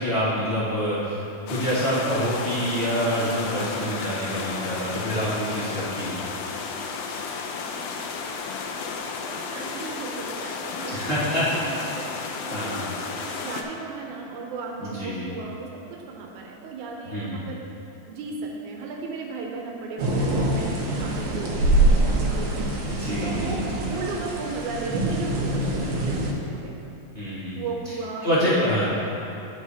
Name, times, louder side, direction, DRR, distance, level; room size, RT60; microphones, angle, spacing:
voice 1, 0.0-6.2 10.9-11.7 12.5-12.8 14.8-15.3 17.0-17.4 22.8-23.6 27.1-27.7 28.2-28.9, equal, 30° left, -13 dB, 1.0 m, -26 dB
sound 1, 1.5-13.6, left 5 dB, 85° left, 1.4 m, -33 dB
voice 2, 9.3-17.7 18.1-22.7 23.2-26.7 27.5-28.5, right 4 dB, 85° right, 0 dB, 2.1 m, -36 dB
sound 2, 20.0-26.3, right 1 dB, 65° right, 1.4 m, -24 dB
11.5 x 4.9 x 2.7 m, 2.9 s
omnidirectional pair, 3.3 m